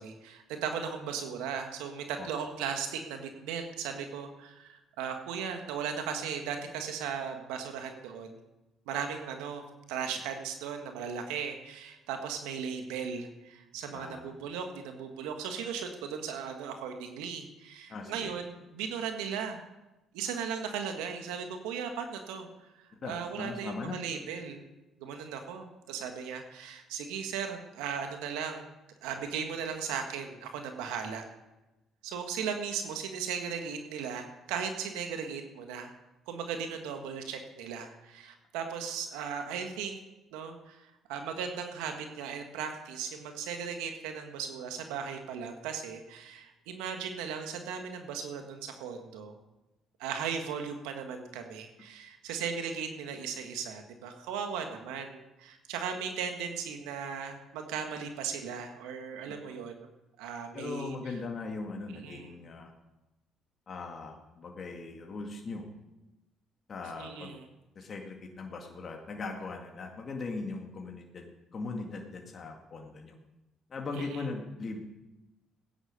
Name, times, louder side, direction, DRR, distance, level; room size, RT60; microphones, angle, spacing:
voice 1, 0.0-8.4 8.9-9.6 9.9-19.6 20.1-22.5 22.8-24.6 25.0-28.7 29.0-31.2 32.0-35.9 36.3-40.0 40.3-49.3 50.0-59.9 60.2-61.2 61.9-62.4 67.0-67.5 73.9-74.2, right 7 dB, 85° right, 5 dB, 1.6 m, -37 dB
voice 2, 13.9-14.4 17.9-18.3 23.0-24.0 59.5-59.6 60.5-62.7 63.7-65.6 66.7-67.3 67.8-73.1 73.7-74.8, left 3 dB, 45° left, 1 dB, 2.2 m, -39 dB
16.0 x 10.0 x 6.7 m, 1.0 s
supercardioid pair, 65°, 0 cm